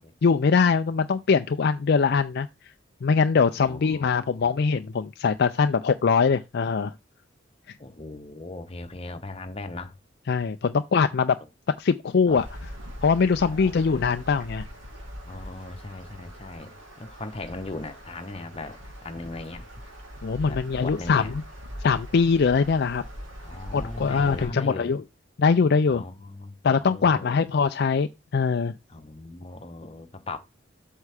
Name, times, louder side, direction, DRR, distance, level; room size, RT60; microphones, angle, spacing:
voice 1, 0.0-2.5 3.0-6.9 10.3-11.4 11.8-12.5 13.0-14.6 20.2-21.2 21.8-23.0 23.7-25.0 25.4-26.0 26.6-28.1 28.3-28.7, left 5 dB, 55° left, 0.4 m, -22 dB
voice 2, 3.6-4.5 7.8-10.0 12.2-12.5 13.4-14.2 15.3-19.6 20.5-21.3 23.4-24.9 25.9-27.4 28.9-30.4, left 2 dB, 30° left, 1.0 m, -39 dB
sound 1, 12.4-24.5, equal, 80° right, 3.5 m, -41 dB
8.1 x 5.4 x 3.5 m
head